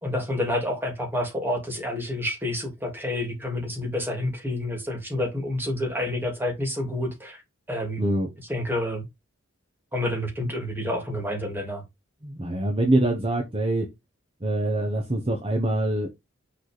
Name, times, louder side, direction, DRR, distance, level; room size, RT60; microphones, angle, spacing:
voice 1, 0.0-7.4 7.7-8.0 8.5-9.1 9.9-11.8, left 1 dB, 10° right, 2.5 m, -29 dB
voice 2, 8.0-8.3 12.2-13.9 14.4-16.1, right 1 dB, 30° right, 1.3 m, -24 dB
6.5 x 3.8 x 5.0 m
head